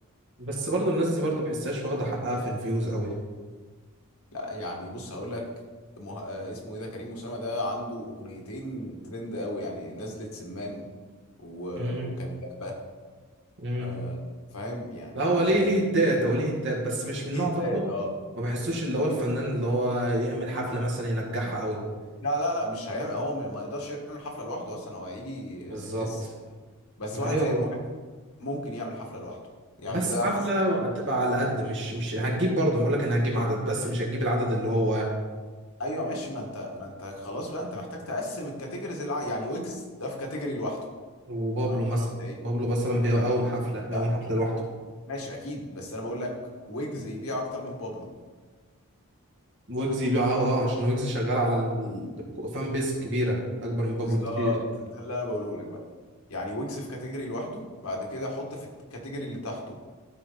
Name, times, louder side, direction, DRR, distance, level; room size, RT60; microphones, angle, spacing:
voice 1, 0.4-3.1 11.8-12.1 13.6-13.9 15.1-17.8 18.4-21.8 25.7-26.1 27.1-27.6 29.9-35.1 41.3-42.0 42.4-44.5 49.7-54.5, right 1 dB, 55° right, -2 dB, 2.1 m, -27 dB
voice 2, 4.3-5.5 6.0-10.9 11.4-12.8 13.8-14.2 14.5-15.7 17.3-18.1 22.2-26.3 27.0-27.7 28.4-29.4 29.8-30.8 35.8-40.8 41.7-42.4 43.9-44.1 45.1-46.3 46.7-48.1 54.0-55.8 56.3-59.8, left 1 dB, 75° left, 0 dB, 1.8 m, -34 dB
13.5 x 4.6 x 4.0 m, 1.4 s
head